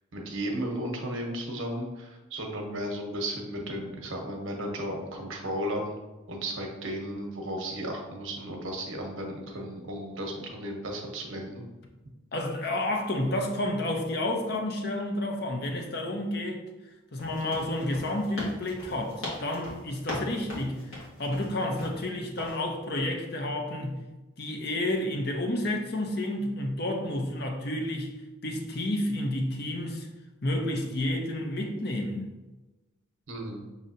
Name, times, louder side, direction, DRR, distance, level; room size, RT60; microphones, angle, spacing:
voice 1, 0.1-6.0 6.3-11.6 33.3-33.7, right 1 dB, 80° right, 1 dB, 0.9 m, -34 dB
voice 2, 12.3-16.6 17.1-20.8 21.2-24.0 24.4-28.1 28.4-30.1 30.4-32.3, left 1 dB, 50° left, 2 dB, 0.7 m, -30 dB
sound 1, 17.2-22.0 22.4-22.6, left 1 dB, 80° left, 1.5 m, -39 dB
6.3 x 2.7 x 2.7 m, 1.1 s
head